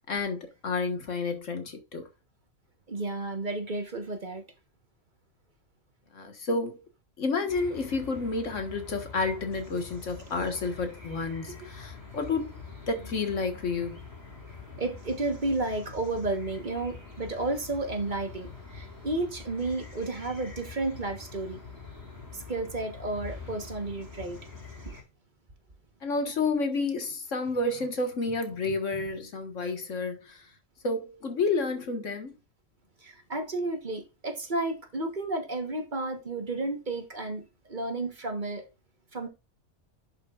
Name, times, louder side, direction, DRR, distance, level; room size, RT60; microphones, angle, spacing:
voice 1, 0.0-2.1 6.1-6.8 7.2-12.5 12.9-14.0 26.0-30.5 30.8-32.3, left 3 dB, 80° left, 1.9 m, -30 dB
voice 2, 2.9-4.4 14.8-21.6 22.3-24.4 24.9-25.0 33.0-38.7 39.1-39.3, right 2 dB, 40° right, 1.3 m, -32 dB
sound 1, 7.5-25.0, left 4 dB, 15° right, 4.2 m, -45 dB
11.0 x 5.7 x 2.4 m
omnidirectional pair, 1.3 m